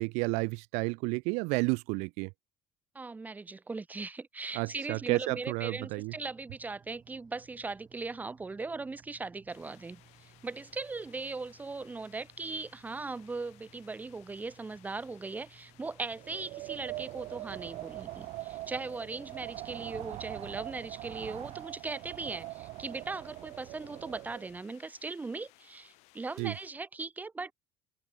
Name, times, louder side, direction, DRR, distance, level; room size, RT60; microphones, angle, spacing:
voice 1, 0.0-2.3 4.5-6.1 26.4-26.5, right 30 dB, 80° right, 0.4 m, -31 dB
voice 2, 2.9-27.5, right 3 dB, 15° right, 1.2 m, -39 dB
sound 1, 5.5-21.6, right 7 dB, 35° right, 5.4 m, -61 dB
sound 2, 9.5-26.7, left 24 dB, 80° left, 4.3 m, -62 dB
Wind, 16.1-24.6, right 18 dB, 65° right, 1.8 m, -42 dB
cardioid pair, 130°, 11 cm